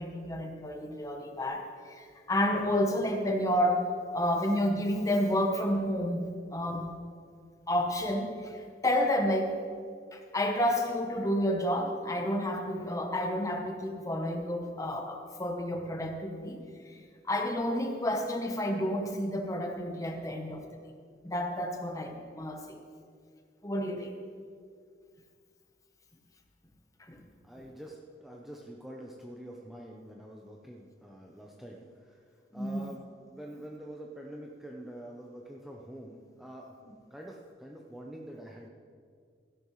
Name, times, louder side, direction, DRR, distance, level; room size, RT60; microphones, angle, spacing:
voice 1, 0.0-6.9 7.7-9.6 10.1-17.0 17.2-20.7 21.2-22.8 23.6-24.1 27.0-27.2 32.5-32.9, left 1 dB, 20° left, 3 dB, 1.0 m, -30 dB
voice 2, 27.4-36.8 37.1-38.7, right 1 dB, ahead, -2 dB, 0.6 m, -46 dB
15.5 x 11.0 x 3.2 m, 2.2 s
head